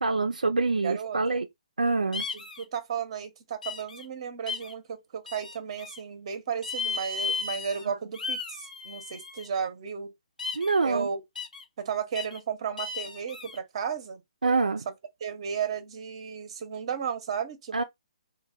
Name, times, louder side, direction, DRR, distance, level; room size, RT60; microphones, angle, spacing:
voice 1, 0.0-1.5 1.8-2.3 7.9-8.0 10.5-11.1 14.4-14.9 17.7-17.8, right 3 dB, 80° right, 0.4 m, -25 dB
voice 2, 0.8-1.4 2.3-10.1 10.8-11.2 11.8-14.2 15.2-17.8, right 7 dB, 45° right, 0.7 m, -34 dB
sound 1, 2.1-2.6 3.6-4.0 4.5-4.7 5.3-6.0 6.6-7.8 8.1-9.5 10.4-10.8 11.4-11.6 12.2-12.4 12.8-13.6, left 4 dB, 75° left, 0.7 m, -35 dB
2.2 x 2.0 x 3.4 m
figure-of-eight pair, 135°, 4 cm